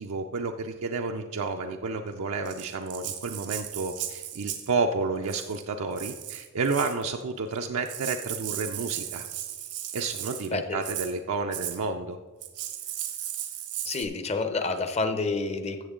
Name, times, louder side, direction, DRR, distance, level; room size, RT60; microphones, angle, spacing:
voice 1, 0.0-9.3 9.9-12.2, right 4 dB, 65° right, 4 dB, 0.5 m, -31 dB
Rattle (instrument), 2.5-4.7 5.2-5.6 6.0-7.0 7.6-7.7 7.9-10.5 10.8-11.1 11.5-11.8 12.4-14.0, right 11 dB, 80° right, 1.1 m, -36 dB
voice 2, 13.8-15.9, left 3 dB, 30° left, 9 dB, 0.6 m, -29 dB
14.0 x 7.2 x 3.7 m, 1.4 s
head